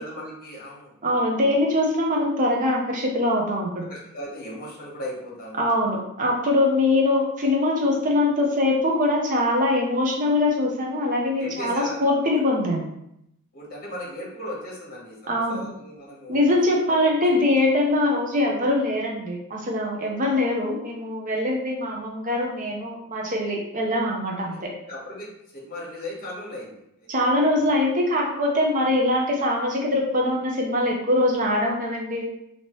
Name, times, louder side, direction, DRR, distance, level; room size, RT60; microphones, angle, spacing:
voice 1, 0.0-0.9 3.9-5.6 11.4-12.0 13.5-17.4 24.4-27.1 27.5-27.6, left 1 dB, 40° left, -4 dB, 1.1 m, -37 dB
voice 2, 1.0-3.9 5.6-12.8 15.3-15.7 16.3-24.7 27.1-32.3, left 1 dB, 35° right, -1 dB, 0.6 m, -23 dB
3.0 x 2.8 x 3.0 m, 0.79 s
head